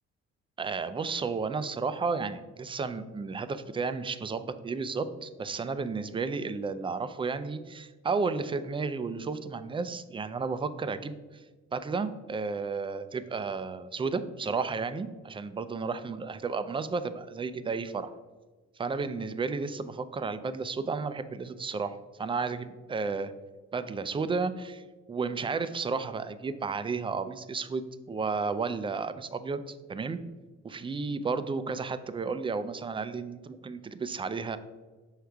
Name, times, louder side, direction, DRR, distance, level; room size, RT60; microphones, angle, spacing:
voice 1, 0.6-11.4 11.7-18.1 18.8-23.3 23.7-24.8 25.1-30.2 30.6-34.6, right 4 dB, 20° right, 12 dB, 0.3 m, -32 dB
6.3 x 4.6 x 3.4 m, 1.3 s
cardioid pair, 90°, 30 cm